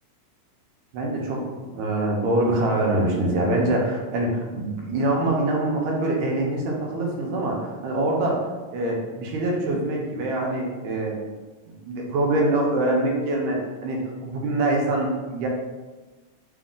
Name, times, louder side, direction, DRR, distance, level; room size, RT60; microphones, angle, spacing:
voice 1, 0.9-8.5 8.7-11.2 11.7-15.5, right 2 dB, 80° right, -1 dB, 2.0 m, -24 dB
4.8 x 2.2 x 3.6 m, 1.2 s
omnidirectional pair, 3.4 m